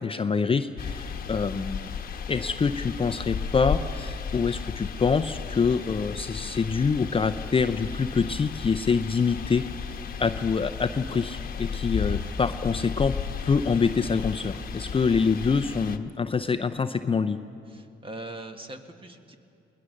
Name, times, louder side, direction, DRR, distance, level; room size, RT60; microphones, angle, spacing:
voice 1, 0.0-1.9 2.3-9.7 10.2-13.2 13.4-17.4, left 5 dB, 25° left, 9 dB, 0.6 m, -25 dB
sound 1, 0.8-16.0, left 6 dB, 50° left, 1.1 m, -34 dB
voice 2, 17.7-19.4, right 2 dB, 25° right, 6 dB, 1.6 m, -41 dB
21.5 x 19.5 x 6.6 m, 2.6 s
cardioid pair, 90°, 20 cm